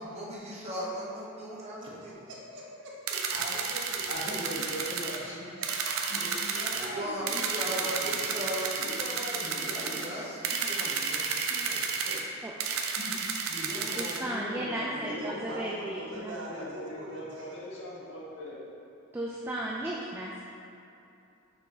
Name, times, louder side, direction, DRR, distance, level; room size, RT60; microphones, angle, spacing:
voice 1, 0.0-2.2 6.7-11.8, equal, 30° right, -5 dB, 1.0 m, -38 dB
voice 2, 1.8-4.1 5.0-5.1 5.6-6.2 14.9-17.5, right 1 dB, 60° right, -4 dB, 1.1 m, -42 dB
sound 1, 3.1-5.2 5.6-6.9 7.3-10.1 10.4-12.2 12.6-14.2, right 5 dB, 85° right, 0.6 m, -32 dB
voice 3, 4.1-5.4 6.1-10.1 12.0-12.2 13.0-13.1 13.5-15.6 16.5-18.6, equal, 70° left, -6 dB, 1.5 m, -41 dB
voice 4, 14.0-16.4 19.1-20.4, right 1 dB, 10° right, -4 dB, 0.3 m, -35 dB
6.3 x 5.9 x 2.8 m, 2.7 s
head